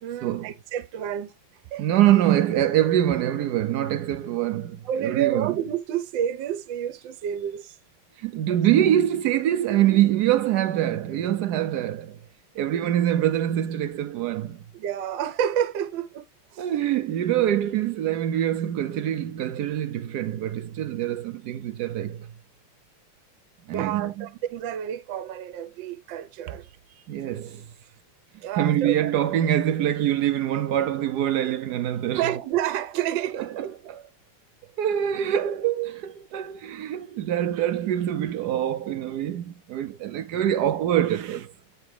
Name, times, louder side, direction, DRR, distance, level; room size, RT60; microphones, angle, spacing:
voice 1, 0.0-1.3 1.7-1.9 4.8-7.8 8.5-8.6 14.7-16.2 16.5-16.6 23.7-27.1 28.4-29.2 32.2-33.8, right 10 dB, 65° right, 1.4 m, -29 dB
voice 2, 1.8-5.6 8.2-12.2 12.5-14.6 16.6-22.3 23.7-24.1 27.1-27.7 28.6-32.3 33.4-34.0 34.8-41.5, right 11 dB, 90° right, 0.8 m, -24 dB
8.9 x 4.0 x 3.3 m
omnidirectional pair, 2.4 m